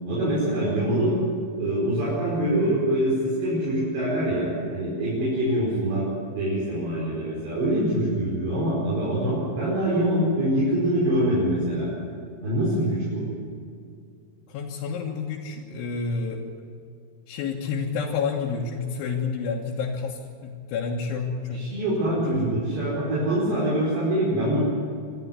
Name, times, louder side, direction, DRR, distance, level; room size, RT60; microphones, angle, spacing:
voice 1, 0.1-1.2 1.6-11.9 12.4-13.3 21.5-24.6, right 1 dB, 65° right, -7 dB, 7.3 m, -24 dB
voice 2, 14.5-16.4 17.3-21.7 22.1-22.5, left 5 dB, 80° left, -4 dB, 4.0 m, -29 dB
25.0 x 13.0 x 9.8 m, 2.3 s
omnidirectional pair, 5.4 m